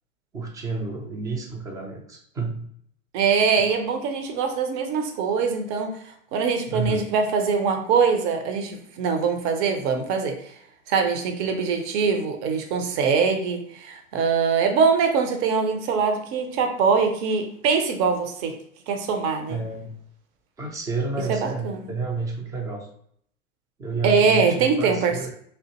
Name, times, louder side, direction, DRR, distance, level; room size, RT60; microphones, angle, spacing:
voice 1, 0.3-2.6 6.7-7.1 19.5-19.9 20.6-22.9 23.8-25.3, right 4 dB, 10° right, 2 dB, 0.3 m, -30 dB
voice 2, 3.1-5.9 6.3-10.4 10.9-18.5 18.9-19.6 21.3-21.9 24.0-25.3, right 5 dB, 45° right, 5 dB, 0.7 m, -23 dB
3.4 x 2.5 x 2.8 m, 0.68 s
hypercardioid pair, 105°, 40 cm